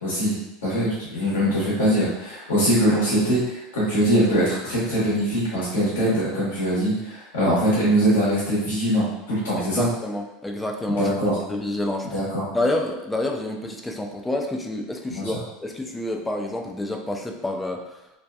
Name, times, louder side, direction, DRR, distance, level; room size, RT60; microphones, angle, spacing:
voice 1, 0.0-9.9 11.0-11.4 12.1-12.4 15.1-15.4, equal, 80° left, -8 dB, 1.0 m, -22 dB
voice 2, 9.6-11.1 11.5-12.2 12.5-17.8, left 1 dB, 10° left, 2 dB, 0.4 m, -28 dB
2.7 x 2.2 x 2.3 m, 0.95 s
hypercardioid pair, 95°, 0 cm